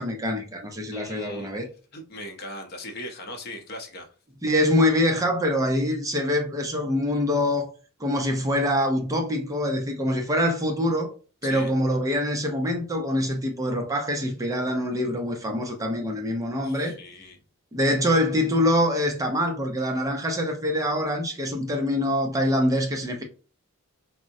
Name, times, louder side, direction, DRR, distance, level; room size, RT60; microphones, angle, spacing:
voice 1, 0.0-1.7 4.4-7.7 8.0-11.1 11.4-16.9 17.7-23.2, left 1 dB, 15° right, 0.4 m, -24 dB
voice 2, 0.9-1.5 1.9-4.1 11.4-11.7 16.6-17.4 21.4-21.5, left 1 dB, 45° left, 0.6 m, -39 dB
3.5 x 2.0 x 2.6 m
head